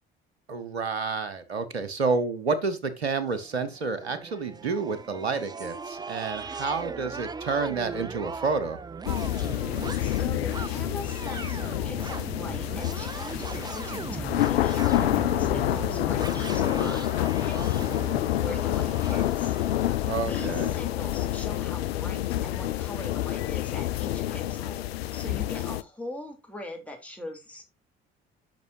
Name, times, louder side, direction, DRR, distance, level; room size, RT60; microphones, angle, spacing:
voice 1, 0.5-8.8 20.1-20.7, right 4 dB, 80° right, 13 dB, 1.0 m, -29 dB
sound 1, 3.3-20.4, right 4 dB, 15° right, 0.4 m, -39 dB
sound 2, 9.1-25.8, left 13 dB, 75° left, 0.5 m, -28 dB
voice 2, 10.0-18.0 18.4-19.6 20.2-24.8 25.1-27.6, left 2 dB, 5° left, 1 dB, 3.2 m, -41 dB
10.5 x 6.1 x 2.7 m, 0.24 s
figure-of-eight pair, 55°, 31 cm